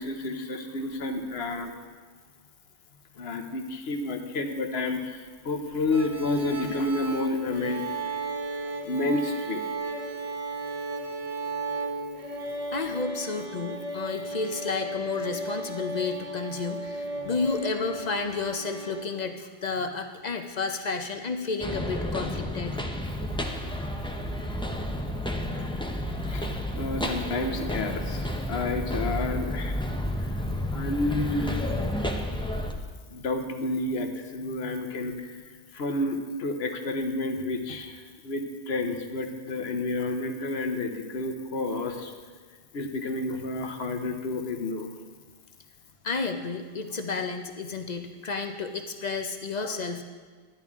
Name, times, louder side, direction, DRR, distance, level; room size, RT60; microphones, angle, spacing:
voice 1, 0.0-1.7 3.2-7.8 8.8-9.6 26.3-26.5 26.7-29.8 30.7-31.6 33.1-35.4 35.7-42.1 42.7-44.9 49.6-49.7, left 2 dB, 65° left, 6 dB, 1.2 m, -30 dB
sound 1, 5.9-19.0, right 2 dB, 35° right, 0.9 m, -35 dB
voice 2, 12.7-22.8 46.0-50.0, left 4 dB, 45° left, 5 dB, 0.7 m, -31 dB
sound 2, 21.6-32.7, left 1 dB, 5° left, 0.5 m, -31 dB
12.5 x 10.5 x 3.6 m, 1.5 s
omnidirectional pair, 1.2 m